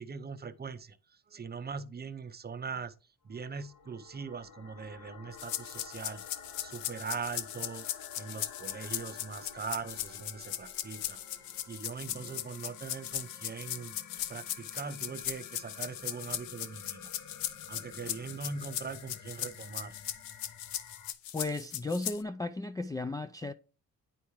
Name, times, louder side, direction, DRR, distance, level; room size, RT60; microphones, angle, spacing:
voice 1, 0.0-2.9 3.2-6.2 6.6-7.9 8.2-11.2 11.7-14.0 14.3-17.1 17.7-20.0, right 5 dB, 30° right, 0.6 m, -41 dB
sound 1, 3.3-21.1, left 6 dB, 60° left, 1.1 m, -52 dB
sound 2, 5.4-22.2, left 12 dB, 90° left, 0.6 m, -38 dB
voice 2, 21.3-23.5, left 2 dB, 10° left, 0.3 m, -35 dB
9.1 x 4.7 x 3.0 m
supercardioid pair, 70°, 34 cm